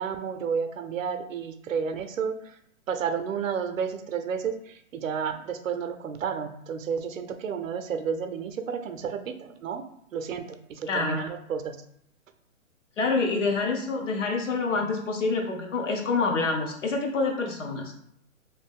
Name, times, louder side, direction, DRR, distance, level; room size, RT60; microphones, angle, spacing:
voice 1, 0.0-2.6 2.9-9.8 10.1-11.8, right 6 dB, 75° right, 8 dB, 0.6 m, -31 dB
voice 2, 10.9-11.2 13.0-17.9, left 3 dB, 60° left, 1 dB, 0.9 m, -27 dB
3.1 x 2.6 x 3.5 m, 0.72 s
hypercardioid pair, 160°, 41 cm